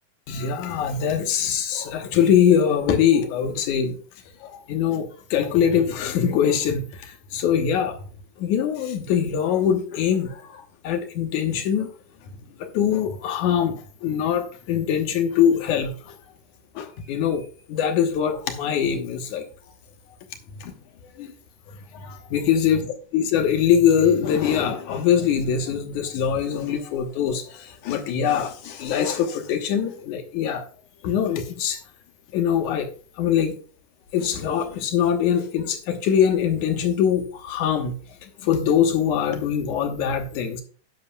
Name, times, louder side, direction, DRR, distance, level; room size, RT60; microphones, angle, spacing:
voice 1, 0.3-4.0 4.4-8.0 8.4-11.9 12.6-16.2 16.8-17.4 17.7-19.5 20.6-20.7 21.2-21.3 21.9-22.9 23.1-30.6 31.0-31.8 32.3-32.9 33.2-33.6 34.1-38.0 38.2-40.6, left 8 dB, 75° left, 6 dB, 2.5 m, -23 dB
10.5 x 10.5 x 2.2 m, 0.40 s
omnidirectional pair, 3.6 m